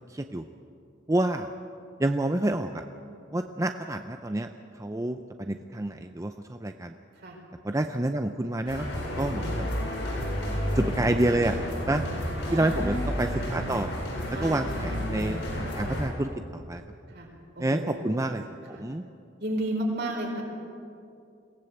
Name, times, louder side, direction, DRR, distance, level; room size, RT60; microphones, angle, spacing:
voice 1, 0.1-0.5 1.1-1.5 2.0-2.8 3.3-4.5 4.7-6.9 7.6-9.7 10.4-11.6 11.9-12.0 12.5-13.9 14.3-16.8 17.6-19.0, right 1 dB, 15° right, 7 dB, 0.6 m, -28 dB
sound 1, 8.7-16.0, equal, 75° left, 7.5 m, -31 dB
voice 2, 12.5-13.1 14.3-14.7 17.1-17.3 17.5-18.2 18.7-18.8 19.4-20.4, right 1 dB, 60° right, 0 dB, 4.7 m, -32 dB
22.5 x 17.0 x 8.1 m, 2.5 s
head